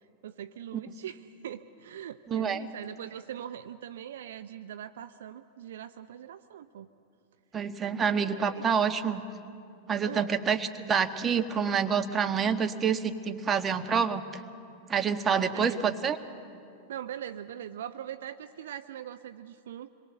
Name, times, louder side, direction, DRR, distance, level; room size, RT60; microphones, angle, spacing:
voice 1, 0.2-6.9 8.0-8.7 10.0-10.3 15.3-15.9 16.9-19.9, right 10 dB, 60° right, 12 dB, 0.7 m, -41 dB
voice 2, 2.3-2.6 7.5-9.2 9.9-14.2 14.9-16.2, right 6 dB, 20° right, 8 dB, 1.4 m, -27 dB
27.0 x 22.0 x 8.0 m, 2.6 s
figure-of-eight pair, 90°, 0 cm